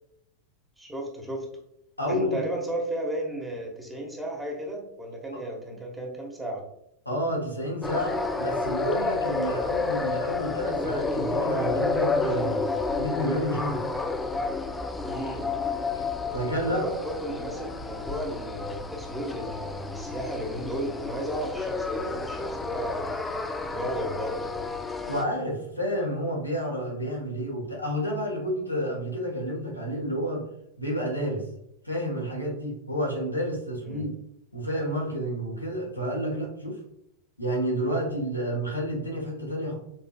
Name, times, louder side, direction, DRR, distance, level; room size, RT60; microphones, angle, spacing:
voice 1, 0.8-1.5 2.1-6.6 15.0-15.5 16.6-23.1 23.7-24.7 33.8-34.1, right 1 dB, 10° right, -1 dB, 1.3 m, -34 dB
voice 2, 2.0-2.4 5.3-5.4 7.0-12.6 13.0-13.8 15.9-16.0 16.3-16.8 25.1-30.4 30.8-31.4 31.8-34.1 34.5-36.8 37.4-39.8, equal, 90° left, -3 dB, 1.3 m, -30 dB
sound 1, 7.8-25.2, left 3 dB, 10° left, 0.4 m, -30 dB
5.5 x 3.7 x 2.2 m, 0.80 s
figure-of-eight pair, 90°, 0 cm